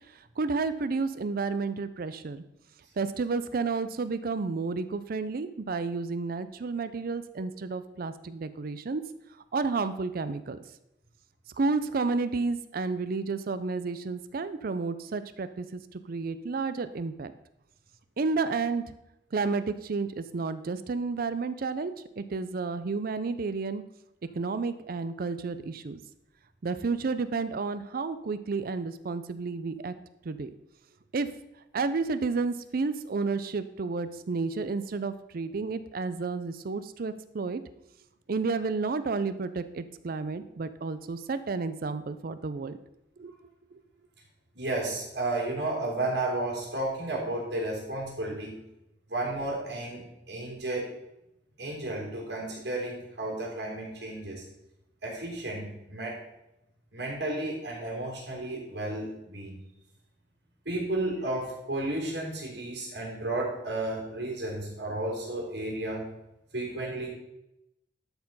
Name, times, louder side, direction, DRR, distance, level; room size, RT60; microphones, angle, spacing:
voice 1, 0.1-2.4 3.0-9.0 9.5-10.6 11.6-17.3 18.2-18.8 19.3-23.8 24.3-26.0 26.6-29.9 30.2-30.5 31.1-31.3 31.7-37.6 38.3-42.8 43.2-43.3 43.7-43.8, right 4 dB, 55° right, 13 dB, 0.5 m, -31 dB
voice 2, 44.5-48.6 49.1-50.9 51.6-54.5 55.0-56.2 56.9-59.5 60.7-66.1 66.5-67.1, right 2 dB, 85° right, -3 dB, 3.5 m, -33 dB
12.0 x 4.5 x 5.4 m, 0.87 s
head